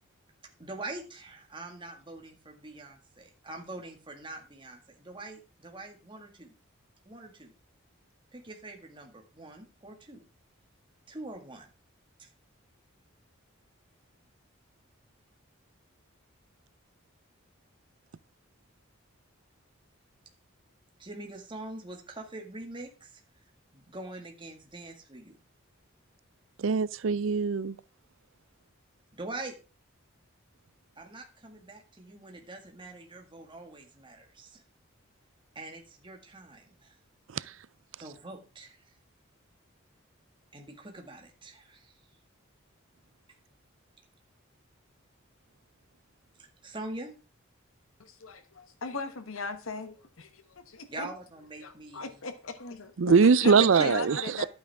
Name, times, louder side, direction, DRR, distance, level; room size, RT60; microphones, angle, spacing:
voice 1, 0.6-6.5 7.1-7.5 8.3-10.2 11.1-11.7 12.2-12.3 21.0-23.2 23.7-25.4 29.1-29.6 31.0-34.6 35.6-37.0 38.0-38.9 40.5-42.0 46.6-47.2 50.9-52.2 53.7-54.2, right 2 dB, 25° right, 1.9 m, -43 dB
voice 2, 26.6-27.7 53.0-54.4, right 5 dB, 65° right, 0.4 m, -22 dB
voice 3, 48.0-51.1 51.9-54.5, left 3 dB, 80° left, 1.1 m, -38 dB
12.0 x 8.8 x 3.5 m
head